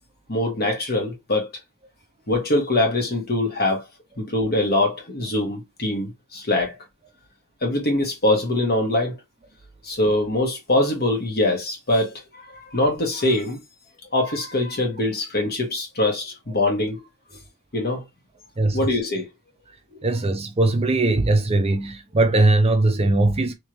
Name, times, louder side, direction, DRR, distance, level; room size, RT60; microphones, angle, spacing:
voice 1, 0.3-1.5 2.3-3.8 4.2-6.8 7.6-9.2 9.8-13.6 14.1-17.0 17.7-18.0 18.7-19.3, left 1 dB, 45° left, 1.5 m, -23 dB
voice 2, 18.6-18.9 20.0-23.5, right 2 dB, 25° right, 0.5 m, -20 dB
3.4 x 3.2 x 3.0 m
head